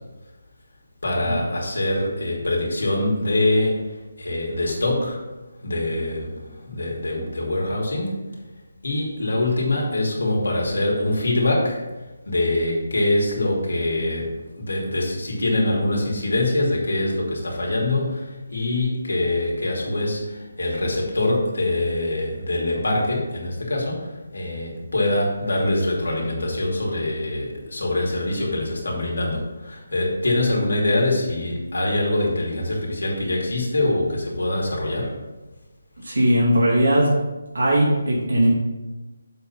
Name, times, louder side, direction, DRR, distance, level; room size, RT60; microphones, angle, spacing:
voice 1, 1.0-5.2 5.6-8.2 8.8-35.2, left 1 dB, 80° left, -2 dB, 2.7 m, -24 dB
voice 2, 36.0-37.2 37.5-38.5, right 1 dB, 80° right, -4 dB, 2.6 m, -19 dB
7.4 x 4.1 x 5.7 m, 1.1 s
figure-of-eight pair, 160°, 0 cm